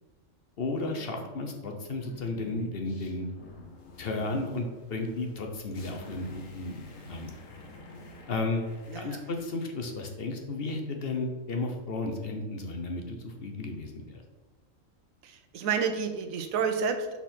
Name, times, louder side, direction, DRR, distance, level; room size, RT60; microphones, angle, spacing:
voice 1, 0.6-3.3 4.0-6.8 7.1-7.3 8.3-8.7 8.9-14.2, left 2 dB, 55° left, 3 dB, 0.9 m, -33 dB
sound 1, 2.0-9.4, left 2 dB, 75° left, 1.3 m, -50 dB
voice 2, 15.2-17.2, right 6 dB, 80° right, 7 dB, 1.1 m, -30 dB
5.9 x 4.3 x 4.2 m, 1.2 s
omnidirectional pair, 1.4 m